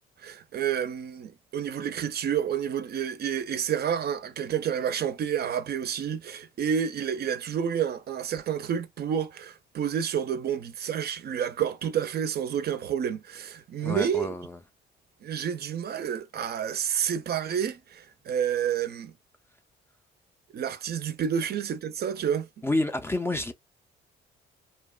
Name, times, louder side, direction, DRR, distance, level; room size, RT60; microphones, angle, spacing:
voice 1, 0.2-14.3 15.2-19.1 20.5-22.5, right 8 dB, 55° right, 0.4 m, -29 dB
voice 2, 13.8-14.6 22.6-23.5, left 2 dB, 10° left, 0.4 m, -29 dB
2.7 x 2.1 x 2.3 m
cardioid pair, 90°, 20 cm